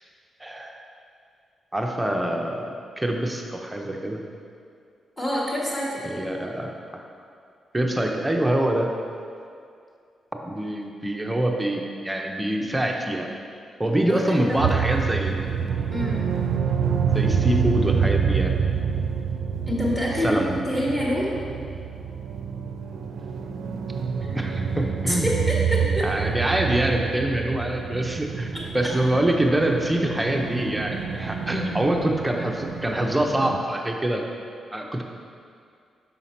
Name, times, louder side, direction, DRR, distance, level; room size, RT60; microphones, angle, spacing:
voice 1, 0.4-0.8 1.7-4.2 6.0-7.0 7.7-8.9 10.3-13.3 13.8-15.4 17.0-18.5 20.2-20.6 24.3-25.3 26.0-34.2 34.7-35.0, right 1 dB, 10° right, 1 dB, 0.5 m, -25 dB
voice 2, 5.2-6.0 14.1-14.7 15.9-16.3 19.7-21.3 25.1-26.1 28.5-28.6, equal, 15° left, -5 dB, 1.2 m, -26 dB
sound 1, 14.6-33.6, right 6 dB, 85° right, 0.4 m, -27 dB
5.7 x 5.6 x 4.2 m, 2.4 s
wide cardioid pair, 165°, 0 cm